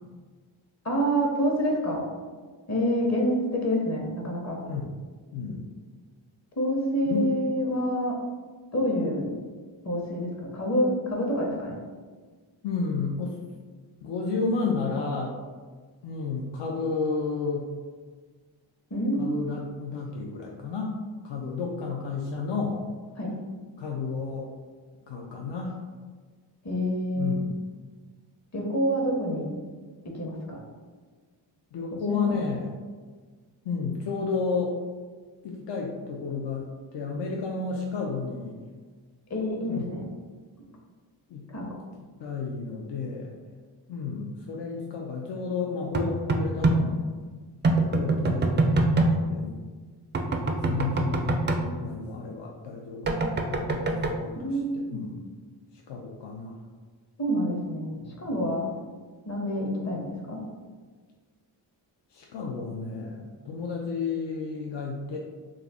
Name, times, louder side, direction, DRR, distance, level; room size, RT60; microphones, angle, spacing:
voice 1, 0.8-2.0 2.7-4.6 6.6-8.2 8.7-9.3 9.8-11.8 18.9-19.3 23.2-23.3 26.6-27.4 28.5-29.5 30.0-30.6 32.1-32.4 39.3-40.0 41.5-41.8 54.4-55.0 57.2-57.9 58.2-58.7 59.3-60.4, equal, 35° left, -1 dB, 0.9 m, -27 dB
voice 2, 5.3-5.7 7.0-7.3 12.6-13.4 14.0-15.4 16.0-17.7 19.2-21.0 21.2-22.8 23.8-24.5 25.1-25.8 27.1-27.6 31.7-32.7 33.6-34.8 35.4-38.6 39.7-39.8 41.3-41.5 42.2-43.3 43.9-47.1 47.9-49.6 50.6-55.2 55.7-56.6 58.0-58.4 62.1-65.2, left 4 dB, 60° left, -1 dB, 0.5 m, -32 dB
sound 1, 45.9-46.8 47.6-49.1 50.1-51.6 53.1-54.1, right 2 dB, 25° right, 0.3 m, -23 dB
2.3 x 2.0 x 3.4 m, 1.5 s
supercardioid pair, 40°, 48 cm